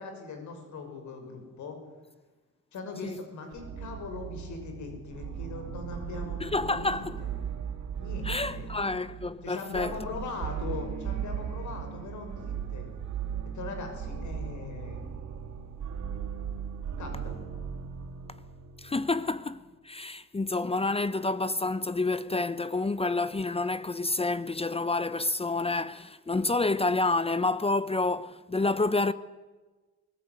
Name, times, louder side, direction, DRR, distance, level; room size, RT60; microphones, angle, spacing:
voice 1, 0.0-1.8 2.7-7.3 7.9-8.7 9.4-12.9 13.5-15.0 17.0-17.3, left 4 dB, 70° left, 6.4 m, -40 dB
sound 1, 3.5-19.2, right 7 dB, 70° right, 3.7 m, -37 dB
voice 2, 6.4-7.2 8.2-9.9 18.8-29.1, left 3 dB, 20° left, 0.9 m, -29 dB
23.0 x 16.0 x 9.6 m
cardioid pair, 90°, 30 cm